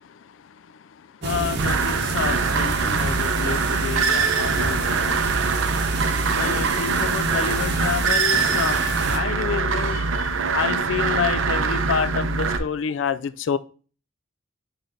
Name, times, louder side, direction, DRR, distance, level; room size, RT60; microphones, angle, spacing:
voice 1, 0.0-13.6, left 7 dB, 75° left, 0.4 m, -29 dB
sound 1, 1.2-9.2, right 3 dB, 60° right, 0.9 m, -30 dB
sound 2, 1.6-12.6, right 4 dB, 90° right, 0.6 m, -23 dB
7.5 x 3.3 x 3.9 m
head